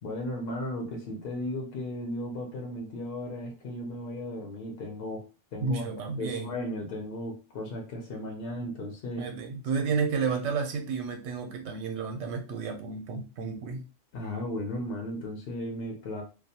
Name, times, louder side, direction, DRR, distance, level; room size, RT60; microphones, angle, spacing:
voice 1, 0.0-5.3 5.5-5.9 6.2-9.3 14.1-16.2, left 1 dB, 60° left, 1 dB, 0.7 m, -35 dB
voice 2, 5.6-6.6 9.2-13.9, right 5 dB, 80° right, 4 dB, 0.9 m, -31 dB
2.3 x 2.1 x 2.7 m, 0.32 s
omnidirectional pair, 1.2 m